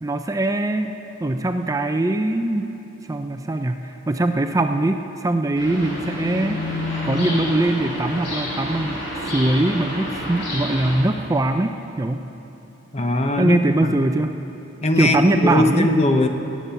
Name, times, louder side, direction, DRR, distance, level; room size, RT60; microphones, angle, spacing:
voice 1, 0.0-2.7 3.1-12.3 13.4-14.3 15.0-16.0, right 2 dB, 15° right, 7 dB, 0.4 m, -22 dB
sound 1, 5.6-11.0, left 1 dB, 65° left, 3.7 m, -28 dB
voice 2, 12.9-14.0 14.8-16.3, left 1 dB, 35° left, 6 dB, 0.8 m, -20 dB
17.5 x 8.6 x 6.8 m, 2.9 s
head